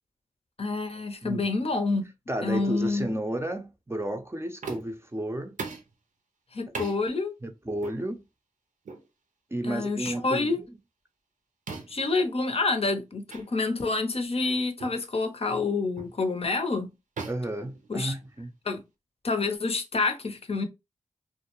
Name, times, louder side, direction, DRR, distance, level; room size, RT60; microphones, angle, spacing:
voice 1, 0.6-2.1 2.4-3.1 6.5-7.4 9.6-10.6 11.9-16.9 17.9-18.1 18.6-18.8 19.2-20.7, left 3 dB, 50° left, 0.6 m, -28 dB
voice 2, 2.3-5.6 7.4-8.2 9.5-10.6 17.3-18.5, right 1 dB, 20° right, 0.5 m, -32 dB
sound 1, 4.6-5.0 5.6-5.9 6.7-7.0 7.8-8.0 8.8-9.1 10.0-10.3 11.7-12.1 13.3-13.4 13.9-14.0 14.8-15.0 16.0-16.2 17.2-18.4, right 4 dB, 75° right, 0.6 m, -39 dB
2.3 x 2.1 x 2.9 m
cardioid pair, 40°, 13 cm